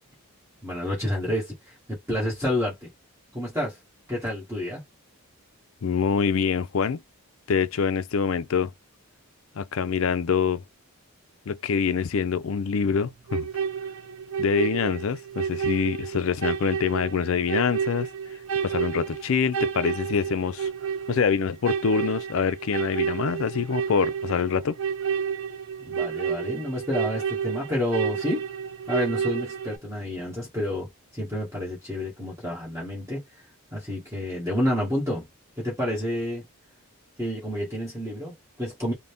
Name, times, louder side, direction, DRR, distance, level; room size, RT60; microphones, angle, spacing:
voice 1, 0.6-1.5 1.9-2.7 3.3-3.8 4.1-4.8 25.8-28.4 28.9-33.2 33.7-35.2 35.6-36.4 37.2-38.9, left 1 dB, 15° right, 1.6 m, -29 dB
voice 2, 5.8-7.0 7.5-8.7 9.6-10.6 11.5-13.5 14.4-18.1 18.6-20.7 21.1-24.8, left 6 dB, 60° left, 0.4 m, -25 dB
sound 1, 13.3-29.8, right 7 dB, 60° right, 0.5 m, -30 dB
3.9 x 2.2 x 3.5 m
head